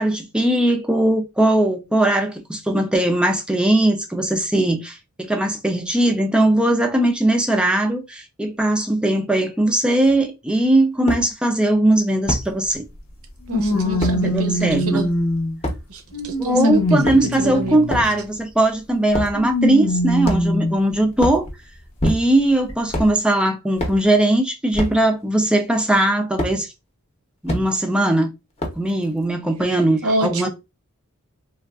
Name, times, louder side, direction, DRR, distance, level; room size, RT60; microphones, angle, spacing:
voice 1, 0.0-12.9 14.2-15.0 16.4-21.5 22.0-26.7 27.4-28.3 28.8-30.5, right 1 dB, 5° right, 0.3 m, -19 dB
sound 1, 10.1-10.2 11.1-11.2 12.3-12.5 14.0-14.2 15.6-15.8 16.9-17.4 17.9-18.1 19.1-19.4 20.2-20.6 21.1-21.4 22.0-22.5 22.9-23.1 23.8-24.0 24.7-25.0 26.4-26.5 27.5-27.6 28.6-28.9, equal, 30° left, 0.7 m, -25 dB
sound 2, 12.3-12.4 13.5-15.6 16.1-18.2 19.3-20.8 21.5-21.6 22.7-22.8, left 1 dB, 80° left, 0.9 m, -22 dB
voice 2, 13.5-15.1 15.9-18.0 30.0-30.5, right 1 dB, 75° right, 0.7 m, -27 dB
3.4 x 2.3 x 2.3 m
head